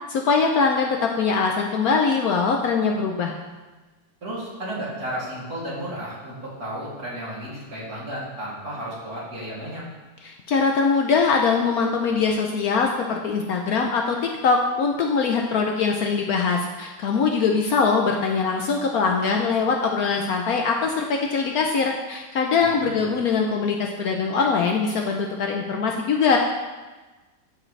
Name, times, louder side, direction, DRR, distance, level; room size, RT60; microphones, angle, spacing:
voice 1, 0.1-3.3 10.2-26.4, left 5 dB, 65° left, 1 dB, 1.0 m, -22 dB
voice 2, 4.2-9.8 22.6-23.1, right 1 dB, 55° right, -8 dB, 3.4 m, -33 dB
14.5 x 5.0 x 3.3 m, 1.2 s
omnidirectional pair, 1.9 m